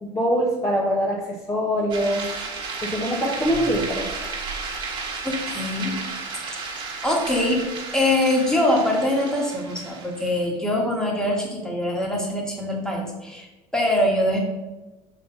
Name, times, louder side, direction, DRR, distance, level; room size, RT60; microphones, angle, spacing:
voice 1, 0.0-2.3 2.8-4.1, equal, 25° left, -3 dB, 1.0 m, -23 dB
sound 1, 1.9-10.4, right 4 dB, 35° right, 1.5 m, -33 dB
voice 2, 5.2-6.0 6.5-6.8 7.0-7.6 7.9-13.5 13.7-14.4, left 1 dB, 5° left, -1 dB, 1.6 m, -23 dB
5.3 x 4.1 x 5.6 m, 1.1 s
cardioid pair, 125°, 13 cm